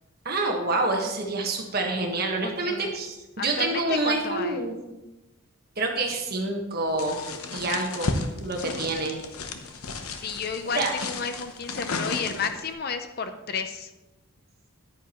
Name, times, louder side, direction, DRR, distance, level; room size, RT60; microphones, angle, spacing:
voice 1, 0.2-4.7 5.8-7.2 7.5-8.1 8.4-9.2 10.7-10.9, right 2 dB, 45° right, 1 dB, 1.4 m, -27 dB
voice 2, 2.4-2.9 3.4-4.6 10.2-13.9, left 5 dB, 45° left, 9 dB, 0.6 m, -32 dB
sound 1, 7.0-12.7, left 3 dB, 85° left, 0.9 m, -33 dB
10.5 x 9.3 x 3.1 m, 1.0 s
head